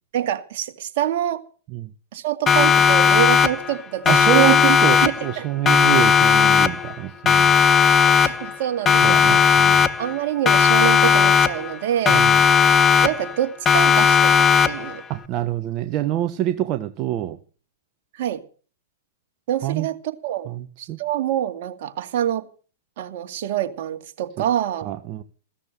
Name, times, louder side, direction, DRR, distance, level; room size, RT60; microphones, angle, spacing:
voice 1, 0.1-1.4 2.1-4.8 5.0-5.4 8.0-9.5 10.0-12.3 13.0-15.0 18.1-18.4 19.5-20.0 20.2-20.5 20.8-22.5 23.0-24.9, right 11 dB, 55° right, 2.4 m, -26 dB
Siren, 2.5-3.8 4.1-5.4 5.7-7.0 7.3-8.6 8.9-10.2 10.5-11.8 12.1-13.4 13.7-15.0, left 7 dB, 20° left, 1.3 m, -16 dB
voice 2, 4.0-7.6 9.0-9.9 12.1-12.4 15.1-17.4 19.6-19.9 20.5-21.0 24.8-25.2, right 14 dB, 40° right, 1.3 m, -25 dB
16.0 x 13.5 x 6.8 m
hypercardioid pair, 115°, 0 cm